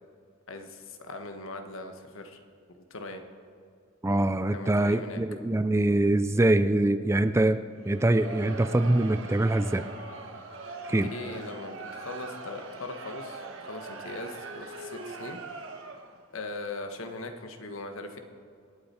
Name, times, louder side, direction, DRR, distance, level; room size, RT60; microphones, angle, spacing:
voice 1, 0.5-2.4 2.9-3.2 4.5-5.2 10.9-15.4 16.3-18.2, left 2 dB, 75° left, 6 dB, 1.3 m, -40 dB
voice 2, 4.0-7.6 7.9-9.8 10.9-11.1, right 1 dB, 15° right, 11 dB, 0.4 m, -24 dB
Crowd, 7.8-16.2, right 3 dB, 65° right, 1.2 m, -41 dB
26.0 x 8.7 x 4.4 m, 2.2 s
head